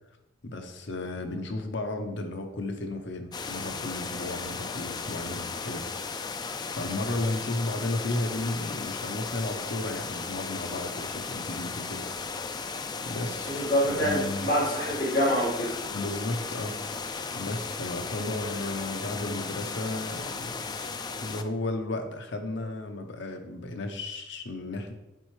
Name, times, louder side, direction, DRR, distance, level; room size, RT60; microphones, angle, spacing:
voice 1, 0.4-5.9 6.7-12.1 13.1-13.6 13.9-14.5 15.9-16.8 17.4-20.7 21.2-24.9, left 2 dB, 65° left, 5 dB, 0.8 m, -34 dB
sound 1, 3.3-21.4, left 4 dB, 20° left, 0.3 m, -35 dB
voice 2, 13.4-15.8, equal, 45° left, -6 dB, 1.9 m, -26 dB
7.8 x 4.2 x 3.2 m, 0.93 s
head